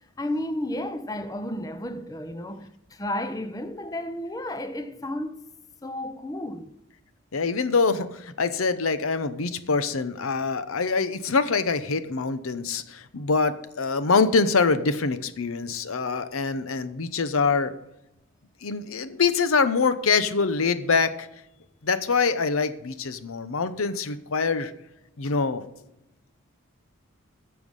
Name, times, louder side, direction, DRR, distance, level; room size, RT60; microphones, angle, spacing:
voice 1, 0.2-5.4 5.8-6.7, left 1 dB, 15° left, 0.5 m, -32 dB
voice 2, 7.3-17.7 18.6-21.3 21.8-24.7 25.2-25.7, left 4 dB, 85° left, 0.8 m, -24 dB
11.0 x 7.0 x 5.4 m
head